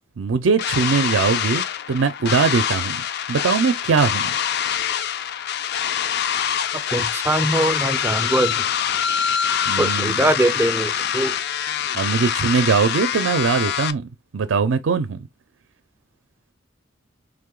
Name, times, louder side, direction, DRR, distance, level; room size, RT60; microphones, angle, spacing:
voice 1, 0.2-3.0 3.3-4.3 9.7-10.2 11.9-15.3, right 5 dB, 75° right, 0.5 m, -21 dB
sound 1, 0.6-13.9, left 9 dB, 55° left, 0.4 m, -24 dB
voice 2, 6.9-8.5 9.8-11.3, right 1 dB, 10° right, 0.3 m, -22 dB
3.5 x 2.8 x 3.7 m
head